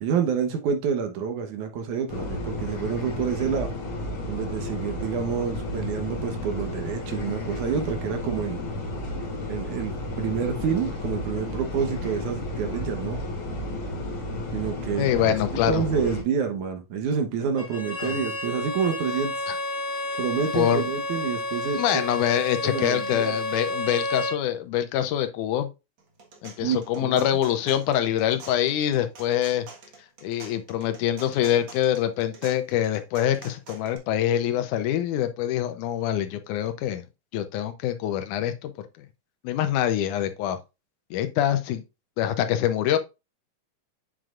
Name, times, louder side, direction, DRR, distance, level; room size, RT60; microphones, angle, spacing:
voice 1, 0.0-3.7 4.3-8.6 9.5-13.2 14.5-15.3 15.7-19.3 20.2-22.0 22.6-23.4 26.6-27.2, right 6 dB, 70° right, 2.4 m, -28 dB
sound 1, 2.1-16.2, left 1 dB, 45° left, 2.6 m, -32 dB
voice 2, 15.0-15.8 18.0-18.2 19.5-19.6 20.5-20.8 21.8-25.7 26.4-29.7 30.2-37.0 37.3-38.7 39.4-40.6 41.1-41.8 42.2-43.0, left 11 dB, 75° left, 2.1 m, -25 dB
Bowed string instrument, 17.6-24.4, left 1 dB, 25° left, 1.2 m, -31 dB
sound 2, 26.0-34.0, right 4 dB, 45° right, 1.7 m, -46 dB
7.6 x 6.4 x 2.5 m
omnidirectional pair, 3.9 m